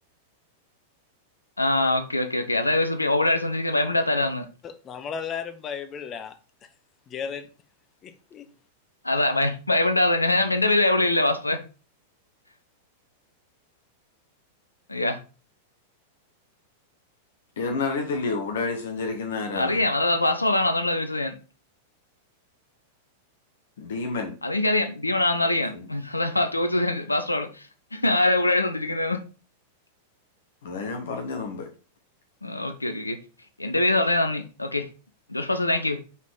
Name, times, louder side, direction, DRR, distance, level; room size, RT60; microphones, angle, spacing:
voice 1, 1.6-4.5 9.0-11.6 14.9-15.2 19.5-21.4 24.4-27.7 27.9-29.2 32.4-33.2 33.6-34.9 35.3-36.0, left 2 dB, 85° left, 0.6 m, -23 dB
voice 2, 4.6-6.3 7.1-7.4 8.0-8.5, left 7 dB, 30° left, 0.8 m, -34 dB
voice 3, 17.6-19.8 23.8-24.3 25.7-25.8 30.6-31.7, left 4 dB, 60° left, 0.9 m, -29 dB
5.5 x 4.0 x 4.6 m
figure-of-eight pair, 95°, 0 cm